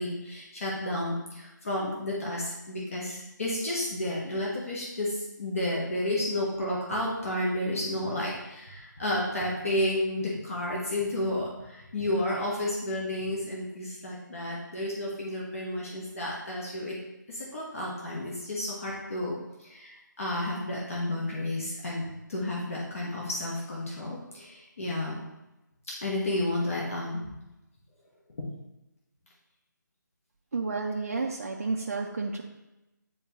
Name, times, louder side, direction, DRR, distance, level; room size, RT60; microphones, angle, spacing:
voice 1, 0.0-17.0 17.3-25.2 25.9-27.2 28.4-28.5, left 1 dB, 45° left, -4 dB, 1.3 m, -31 dB
voice 2, 30.5-32.4, right 4 dB, 45° right, 0 dB, 0.6 m, -31 dB
9.4 x 3.6 x 3.0 m, 0.96 s
figure-of-eight pair, 155°, 11 cm